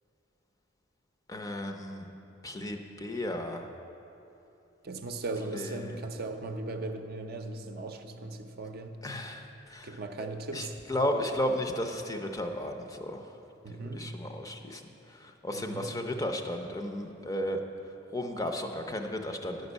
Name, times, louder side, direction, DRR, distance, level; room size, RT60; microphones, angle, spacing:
voice 1, 1.3-2.1 2.4-3.7 5.5-6.0 9.0-9.5 9.7-10.0 10.5-13.2 13.9-14.8 15.2-17.6 18.1-19.7, left 1 dB, 20° left, 4 dB, 0.6 m, -34 dB
voice 2, 4.8-9.0 9.8-10.7 13.6-14.1 15.5-16.0, right 2 dB, 50° right, 6 dB, 0.6 m, -38 dB
10.5 x 5.3 x 8.0 m, 2.9 s
head